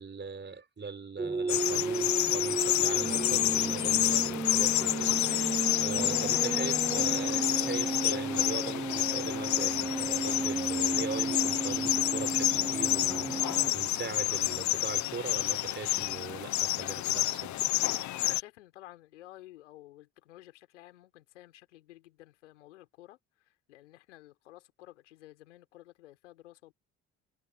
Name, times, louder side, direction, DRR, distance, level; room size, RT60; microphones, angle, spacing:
voice 1, 0.0-17.6, right 4 dB, 30° right, 4.5 m, -40 dB
sound 1, 1.2-13.7, right 3 dB, 10° right, 0.6 m, -34 dB
sound 2, 1.5-18.4, left 15 dB, 55° left, 0.9 m, -29 dB
voice 2, 18.2-26.7, left 15 dB, 80° left, 4.0 m, -53 dB
hypercardioid pair, 50°, 35 cm